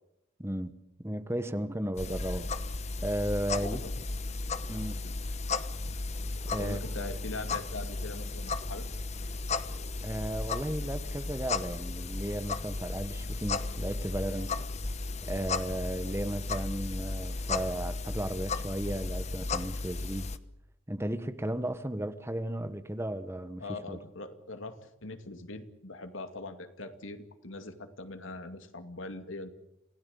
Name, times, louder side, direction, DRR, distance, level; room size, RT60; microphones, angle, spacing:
voice 1, 0.4-0.7 1.0-2.5 3.0-3.9 4.7-5.0 6.4-6.8 10.0-14.5 15.2-20.3 20.9-23.6 23.9-24.0, right 1 dB, 15° right, 1.3 m, -34 dB
sound 1, 2.0-20.4, left 3 dB, 35° left, 1.0 m, -35 dB
voice 2, 6.6-8.9 23.6-29.5, left 2 dB, 80° left, 2.4 m, -42 dB
27.5 x 17.0 x 8.5 m
head